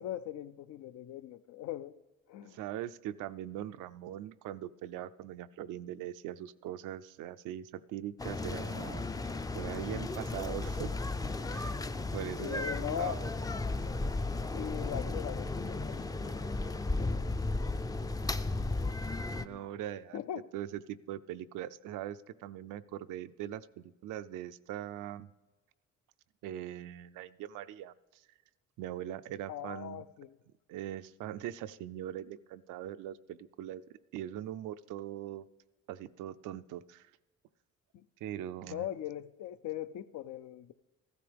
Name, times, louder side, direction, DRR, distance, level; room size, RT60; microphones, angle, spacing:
voice 1, 0.0-1.9 2.3-2.6 12.4-13.2 14.5-17.2 19.4-19.8 20.1-20.5 29.5-30.4 37.9-38.0 38.6-40.7, left 11 dB, 70° left, 0.5 m, -41 dB
voice 2, 2.5-10.9 11.4-11.8 12.1-13.3 19.3-20.2 20.5-25.3 26.4-28.2 28.8-30.0 30.7-33.8 34.1-35.5 35.9-37.1 38.2-38.9, right 12 dB, 90° right, 0.5 m, -41 dB
sound 1, 8.2-19.5, left 2 dB, 10° left, 0.4 m, -35 dB
14.5 x 13.0 x 3.4 m
cardioid pair, 90°, 30 cm